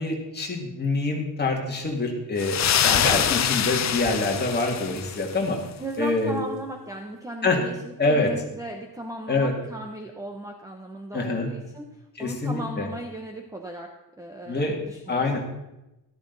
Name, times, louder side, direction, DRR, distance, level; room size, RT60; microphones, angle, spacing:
voice 1, 0.0-5.6 6.0-6.4 7.4-7.6 8.0-8.3 9.3-9.5 11.1-11.5 12.2-12.9 14.5-14.8 15.1-15.4, left 3 dB, 20° left, 0 dB, 2.2 m, -25 dB
sound 1, 2.4-5.4, left 9 dB, 40° left, 0.5 m, -24 dB
voice 2, 5.8-15.4, right 1 dB, 5° right, 3 dB, 0.8 m, -37 dB
13.5 x 13.0 x 4.0 m, 0.94 s
wide cardioid pair, 175°, 45 cm